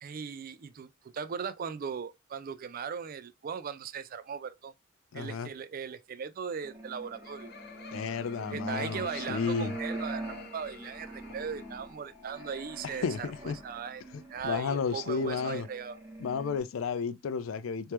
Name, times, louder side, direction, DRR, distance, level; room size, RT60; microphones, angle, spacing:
voice 1, 0.0-4.7 5.1-7.5 8.5-10.2 10.5-14.0 14.3-16.0, right 6 dB, 45° right, 0.4 m, -38 dB
voice 2, 5.1-5.5 7.9-9.7 13.0-13.6 14.4-15.7 16.2-17.9, left 5 dB, 85° left, 0.4 m, -32 dB
sound 1, 6.6-16.6, right 1 dB, 10° right, 1.2 m, -43 dB
Laughter, 6.7-12.0, left 5 dB, 55° left, 0.9 m, -50 dB
3.3 x 3.1 x 2.9 m
head